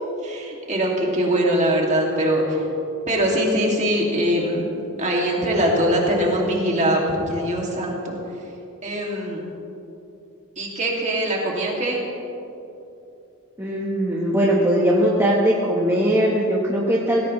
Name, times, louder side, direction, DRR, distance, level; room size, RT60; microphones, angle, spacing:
voice 1, 0.2-2.6 3.1-4.7 5.0-7.0 7.3-8.1 8.8-9.4 10.6-12.0, right 1 dB, 35° right, -2 dB, 2.5 m, -22 dB
voice 2, 13.6-17.3, equal, 10° right, -5 dB, 1.3 m, -20 dB
18.0 x 16.5 x 3.3 m, 2.8 s
head